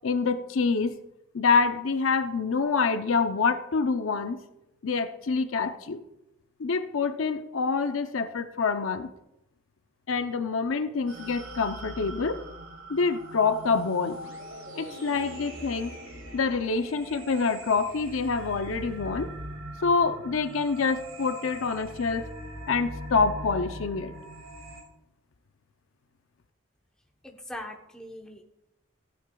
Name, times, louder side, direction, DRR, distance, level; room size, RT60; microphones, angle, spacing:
voice 1, 0.0-1.0 1.3-4.4 4.8-6.0 6.6-9.1 10.1-12.4 12.9-14.2 14.7-15.9 16.3-19.3 19.8-22.3 22.7-24.1, left 4 dB, 80° left, 10 dB, 0.6 m, -26 dB
sound 1, 11.1-24.8, right 1 dB, 70° right, 2.3 m, -41 dB
voice 2, 27.2-28.4, left 1 dB, 5° left, 1 dB, 0.9 m, -41 dB
15.0 x 8.6 x 2.3 m, 0.87 s
head